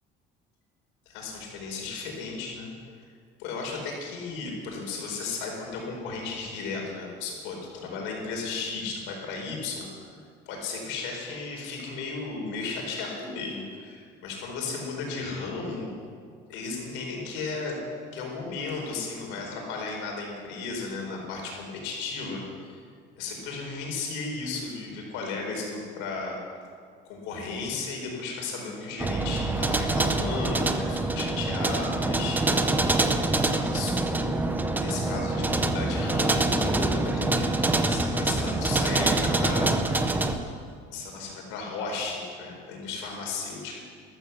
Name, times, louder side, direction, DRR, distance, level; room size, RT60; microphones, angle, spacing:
voice 1, 1.1-2.7 3.4-10.1 10.5-15.9 16.5-17.8 18.1-22.4 22.7-22.8 23.1-26.4 27.0-32.8 33.7-34.5 34.8-37.5 37.9-39.7 40.9-43.8, left 4 dB, 85° left, 0 dB, 4.7 m, -35 dB
sound 1, 29.0-40.4, right 2 dB, 10° right, 0.7 m, -25 dB
14.0 x 13.5 x 7.0 m, 2.1 s
cardioid pair, 170°, 20 cm